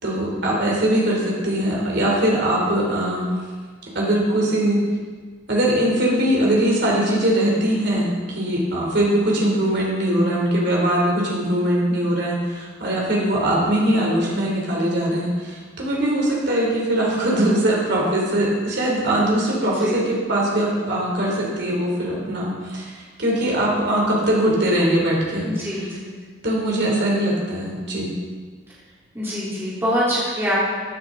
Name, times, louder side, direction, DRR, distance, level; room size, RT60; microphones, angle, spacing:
voice 1, 0.0-3.3 3.9-4.8 5.5-25.5 26.4-28.1, right 1 dB, 60° right, -3 dB, 3.2 m, -21 dB
voice 2, 19.6-20.0 25.4-26.1 29.1-30.5, equal, 15° right, -10 dB, 3.6 m, -25 dB
15.0 x 9.9 x 3.8 m, 1.5 s
head